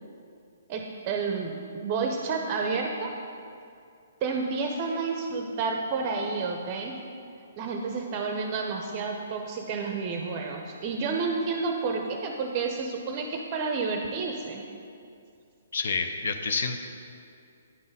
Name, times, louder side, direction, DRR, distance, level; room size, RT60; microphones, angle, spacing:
voice 1, 0.7-3.1 4.2-7.0 7.6-14.6, right 4 dB, 30° right, 3 dB, 0.5 m, -30 dB
voice 2, 15.7-16.8, left 4 dB, 70° left, 7 dB, 0.5 m, -28 dB
9.5 x 3.9 x 5.4 m, 2.4 s
hypercardioid pair, 155°, 0 cm